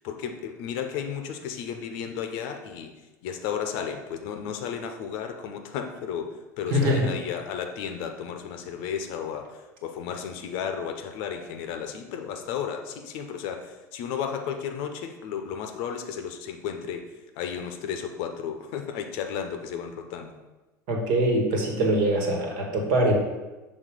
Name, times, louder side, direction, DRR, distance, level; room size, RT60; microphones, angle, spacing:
voice 1, 0.0-2.9 3.2-17.1 17.4-20.3, left 7 dB, 55° left, 5 dB, 0.7 m, -33 dB
voice 2, 6.7-7.1 20.9-23.2, right 1 dB, 60° right, 0 dB, 1.5 m, -23 dB
6.4 x 3.6 x 5.1 m, 1.1 s
figure-of-eight pair, 75°, 10 cm